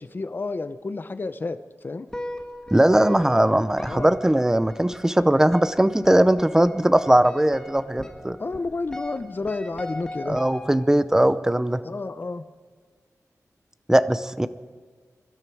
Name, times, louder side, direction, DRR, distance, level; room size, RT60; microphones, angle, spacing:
voice 1, 0.0-1.6 1.8-2.1 3.9-4.1 8.4-10.4 11.8-12.4, left 3 dB, 35° left, 11 dB, 0.7 m, -30 dB
sound 1, 2.1-11.1, left 1 dB, 10° left, 1.5 m, -39 dB
voice 2, 2.7-8.4 10.3-11.8 13.9-14.5, right 1 dB, 10° right, 13 dB, 0.6 m, -20 dB
23.0 x 12.5 x 4.8 m, 1.5 s
wide cardioid pair, 120°, 6 cm